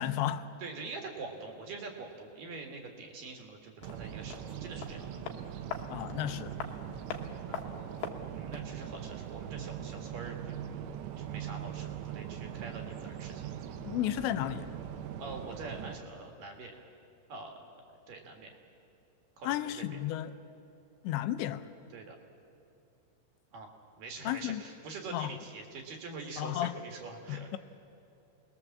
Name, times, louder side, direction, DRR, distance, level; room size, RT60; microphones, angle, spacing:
voice 1, 0.0-0.4 5.9-6.6 13.8-14.7 19.4-20.3 21.0-21.7 24.3-24.6 25.1-25.3 26.4-26.7 27.3-27.6, left 13 dB, 85° left, 3.0 m, -33 dB
voice 2, 0.6-5.2 7.1-10.6 11.2-13.5 15.2-16.9 17.3-17.7 18.1-18.6 19.4-20.0 21.9-22.2 23.5-27.6, right 3 dB, 60° right, 2.9 m, -45 dB
sound 1, 3.8-8.8 9.0-9.1, left 7 dB, 65° left, 2.6 m, -43 dB
sound 2, 3.8-16.0, right 9 dB, 80° right, 3.2 m, -41 dB
26.0 x 20.5 x 7.3 m
omnidirectional pair, 5.2 m